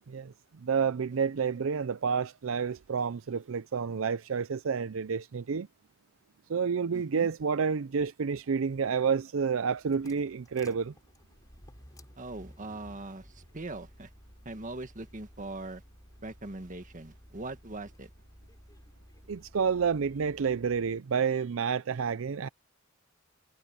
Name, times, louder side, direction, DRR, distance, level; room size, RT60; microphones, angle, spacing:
voice 1, 0.6-5.7 6.5-10.9 19.3-22.5, right 6 dB, 75° right, 0.5 m, -29 dB
voice 2, 6.9-7.3 12.2-14.1 14.4-15.8 16.2-18.1, right 2 dB, 40° right, 1.6 m, -41 dB
sound 1, 9.6-21.0, equal, 20° left, 3.3 m, -55 dB
head